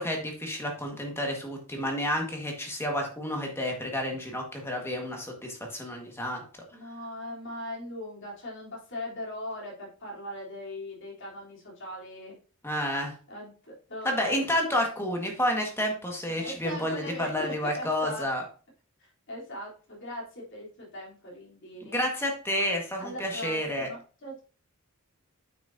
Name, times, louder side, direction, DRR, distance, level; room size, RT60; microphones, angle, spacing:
voice 1, 0.0-6.4 12.6-13.1 14.0-18.4 21.8-23.9, left 1 dB, 10° left, 1 dB, 1.6 m, -30 dB
voice 2, 6.7-12.3 13.3-14.4 16.3-18.3 19.0-22.0 23.0-24.4, left 1 dB, 55° left, -4 dB, 3.4 m, -40 dB
8.9 x 6.2 x 2.7 m, 0.38 s
head